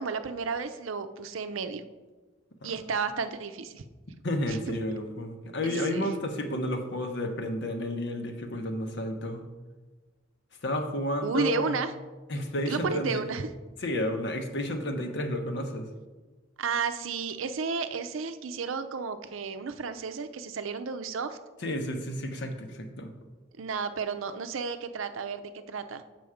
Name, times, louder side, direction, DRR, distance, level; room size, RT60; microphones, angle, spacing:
voice 1, 0.0-1.9 2.6-3.8 4.5-4.6 5.6-6.1 11.2-11.9 12.7-13.5 16.6-21.4 23.6-26.0, right 5 dB, 90° right, 10 dB, 0.6 m, -32 dB
voice 2, 4.2-9.4 10.6-11.8 12.3-13.3 13.8-15.9 21.6-23.1, left 1 dB, 60° left, 5 dB, 1.0 m, -31 dB
7.1 x 6.1 x 4.9 m, 1.3 s
head